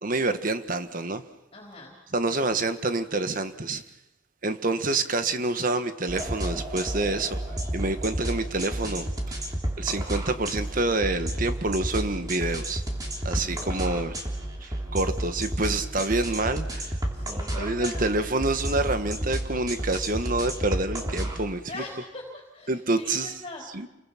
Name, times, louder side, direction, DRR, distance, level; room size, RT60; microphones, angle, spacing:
voice 1, 0.0-1.2 2.1-3.8 4.4-9.1 9.8-12.8 13.2-14.2 14.6-17.0 17.5-21.8 22.7-23.3 23.7-23.9, right 2 dB, 45° right, 1.5 m, -27 dB
voice 2, 1.5-1.9 13.3-14.2 17.1-18.2 21.7-23.7, left 2 dB, 30° left, 4.2 m, -42 dB
sound 1, 6.1-21.4, right 1 dB, 20° right, 3.1 m, -31 dB
30.0 x 23.5 x 5.9 m
head